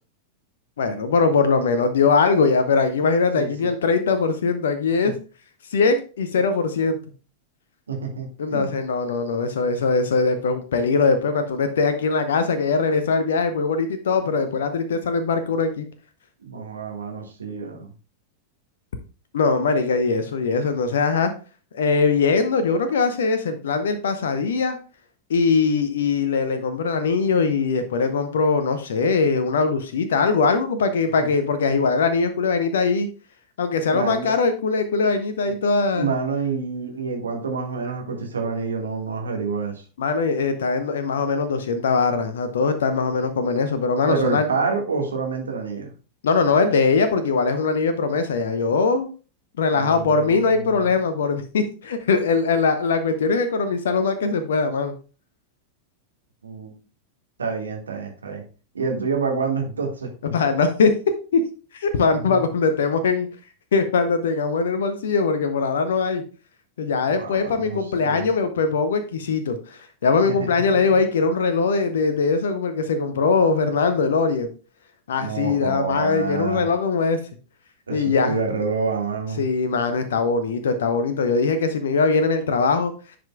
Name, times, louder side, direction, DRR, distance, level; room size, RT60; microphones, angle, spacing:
voice 1, 0.8-5.1 5.7-7.0 8.4-15.8 19.3-21.3 21.7-24.8 25.3-33.1 33.6-36.1 40.0-44.5 46.2-49.1 49.6-54.9 60.2-61.0 61.3-61.4 61.7-63.3 63.7-66.2 66.8-74.5 75.1-77.2 77.9-78.4 79.4-82.9, left 4 dB, 65° left, 9 dB, 0.6 m, -21 dB
voice 2, 3.3-3.7 5.0-5.1 7.9-8.7 16.4-17.9 31.2-31.3 33.9-34.3 35.9-39.8 44.1-45.9 49.7-50.8 56.4-56.7 57.4-58.4 58.7-60.1 61.9-62.4 67.1-68.3 70.3-70.4 70.7-71.0 75.2-76.6 77.9-79.4, right 4 dB, 70° right, 2 dB, 1.7 m, -28 dB
10.5 x 5.1 x 2.3 m, 0.36 s
figure-of-eight pair, 90°, 0 cm